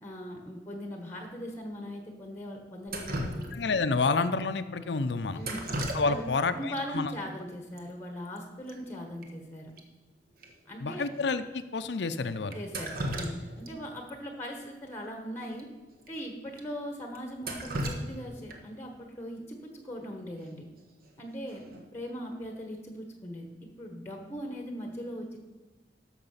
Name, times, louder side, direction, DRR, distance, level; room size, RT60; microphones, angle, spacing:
voice 1, 0.0-3.5 5.3-5.7 6.1-6.2 6.5-9.7 10.7-11.1 12.5-15.7 16.1-20.7 21.2-23.5 23.8-25.4, equal, 15° left, 3 dB, 1.1 m, -40 dB
Drip, 2.9-3.9 5.4-6.4 6.7-6.8 7.8-7.9 8.1-8.4 8.7-8.8 9.2-9.3 9.8-9.9 10.4-10.5 11.2-11.3 12.5-13.7 14.1-14.2 15.5-15.6 16.0-16.1 16.6-16.7 17.1-18.8 20.8-21.1 21.5-21.9, right 1 dB, 50° right, 1.2 m, -36 dB
voice 2, 3.5-5.4 5.9-7.1 10.8-12.6, left 4 dB, 70° left, 11 dB, 0.5 m, -29 dB
12.0 x 6.8 x 5.6 m, 1.2 s
head